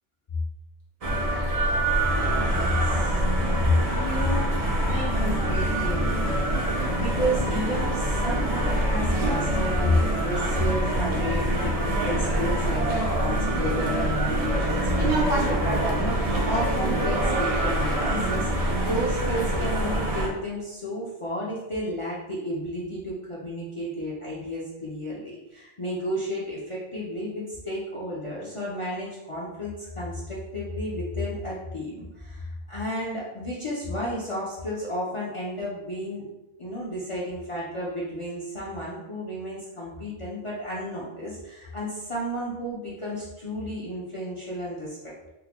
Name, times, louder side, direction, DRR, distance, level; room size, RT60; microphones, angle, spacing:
sound 1, 1.0-20.3, right 1 dB, 60° right, 0.3 m, -25 dB
voice 1, 1.7-3.2 3.6-3.7 4.0-36.3 36.6-45.1, left 1 dB, 55° left, -7 dB, 0.3 m, -32 dB
3.7 x 2.1 x 2.9 m, 1.0 s
omnidirectional pair, 1.4 m